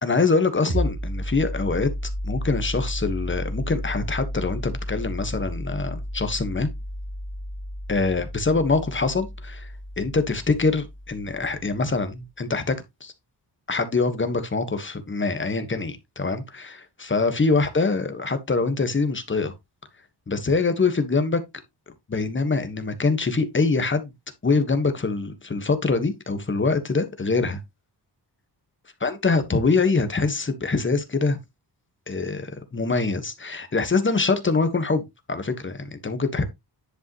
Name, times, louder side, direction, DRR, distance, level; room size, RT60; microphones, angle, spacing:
voice 1, 0.0-1.9 2.2-6.7 7.9-9.7 10.0-12.7 13.0-13.1 13.7-19.5 20.3-21.4 22.1-24.1 24.4-27.6 29.0-31.4 32.1-36.4, left 4 dB, 30° left, 1.5 m, -24 dB
sound 1, 0.7-12.0, equal, 40° right, 3.6 m, -32 dB
10.5 x 5.5 x 3.1 m
wide cardioid pair, 125°, 40 cm